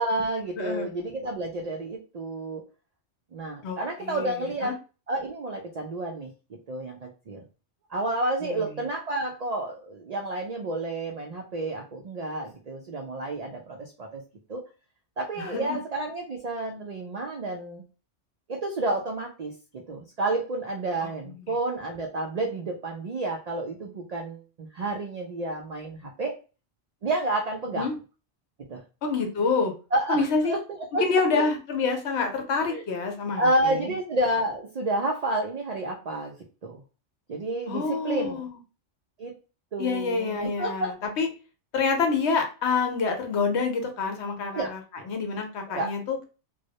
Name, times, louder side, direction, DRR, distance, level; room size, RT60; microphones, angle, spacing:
voice 1, 0.0-2.6 3.3-4.8 5.1-6.3 6.7-7.4 7.9-14.2 14.5-14.6 15.2-17.8 18.5-26.3 27.0-27.9 28.7-28.8 29.9-31.0 31.3-31.4 32.7-32.8 33.4-36.3 36.6-36.8 37.3-38.4 39.2-39.3 39.7-40.9 44.5-44.7 45.7-45.9, right 2 dB, 90° right, 1 dB, 0.3 m, -30 dB
voice 2, 0.6-0.9 3.6-4.7 8.4-8.6 15.4-15.8 21.2-21.5 27.8-27.9 29.0-29.7 30.1-30.5 31.0-33.9 37.7-38.6 39.8-41.3 41.7-44.8 45.1-46.2, left 4 dB, 70° left, 4 dB, 0.9 m, -27 dB
2.2 x 2.0 x 2.7 m, 0.33 s
omnidirectional pair, 1.2 m